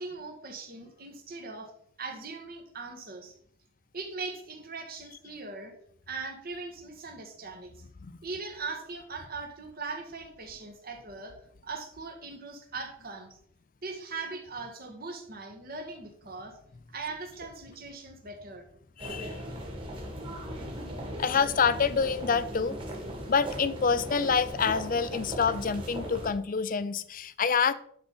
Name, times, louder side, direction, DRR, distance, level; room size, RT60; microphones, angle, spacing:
voice 1, 0.0-1.7 2.0-3.3 3.9-5.7 6.1-7.8 8.2-11.4 11.6-13.4 13.8-16.6 16.9-18.7, right 3 dB, 45° right, 3 dB, 1.7 m, -40 dB
voice 2, 19.0-19.4 21.2-22.8 23.3-27.7, left 5 dB, 40° left, 15 dB, 0.5 m, -27 dB
sound 1, 19.0-26.3, equal, 25° right, 2.3 m, -38 dB
11.0 x 4.1 x 5.4 m, 0.65 s
head